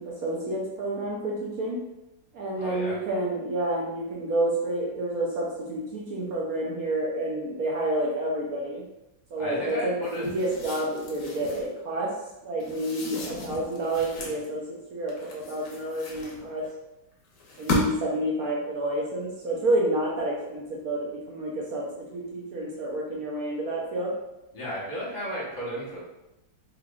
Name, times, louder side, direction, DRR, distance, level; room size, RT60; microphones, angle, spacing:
voice 1, 0.0-1.8 2.3-8.8 9.3-12.1 12.4-14.6 14.9-16.7 17.6-24.1, right 1 dB, 70° right, -3 dB, 0.8 m, -29 dB
voice 2, 2.6-3.0 9.4-10.3 24.5-26.0, equal, 30° left, -7 dB, 1.1 m, -34 dB
sound 1, 10.0-11.7 12.6-14.4 15.1-16.7 17.4-18.2, left 2 dB, 60° left, 0.9 m, -35 dB
3.6 x 3.4 x 2.3 m, 0.93 s
omnidirectional pair, 2.2 m